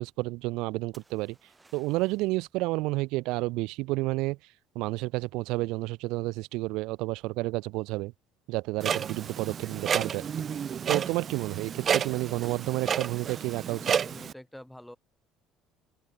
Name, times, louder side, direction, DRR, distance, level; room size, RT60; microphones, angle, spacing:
voice 1, 0.0-1.4 1.7-4.4 4.7-8.1 8.5-10.2 10.9-13.8, right 22 dB, 80° right, 0.9 m, -30 dB
sound 1, 0.9-2.4 6.1-6.5, right 3 dB, 15° right, 6.6 m, -61 dB
Clock, 8.8-14.3, right 7 dB, 35° right, 0.6 m, -31 dB
voice 2, 13.7-15.0, left 1 dB, 5° left, 1.5 m, -46 dB
open air
cardioid pair, 135°, 0 cm